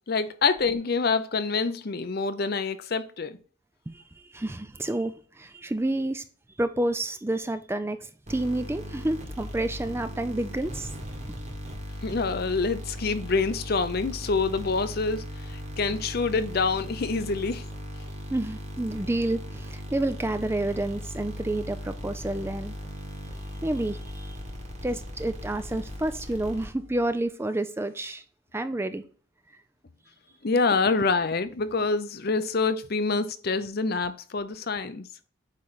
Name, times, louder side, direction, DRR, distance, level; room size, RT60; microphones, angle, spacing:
voice 1, 0.1-3.4 12.0-17.6 30.4-35.1, left 4 dB, 50° left, 0.6 m, -26 dB
voice 2, 3.9-6.2 6.6-10.9 18.3-22.7 23.6-24.4 24.8-28.2 28.5-29.0, right 1 dB, 10° right, 0.4 m, -29 dB
sound 1, 8.3-27.0, equal, 35° right, 1.7 m, -38 dB
8.3 x 3.3 x 4.0 m
head